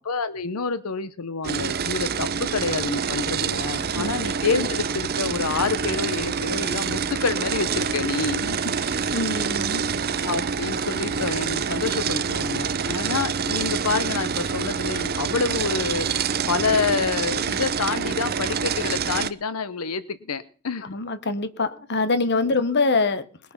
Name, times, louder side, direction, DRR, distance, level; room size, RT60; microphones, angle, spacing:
voice 1, 0.0-8.7 10.2-16.1 16.5-20.9, left 4 dB, 85° left, 0.8 m, -28 dB
sound 1, 1.4-19.3, right 6 dB, 45° right, 0.7 m, -26 dB
voice 2, 8.8-9.8 20.8-23.3, left 3 dB, 50° left, 1.2 m, -24 dB
20.5 x 8.3 x 5.9 m
head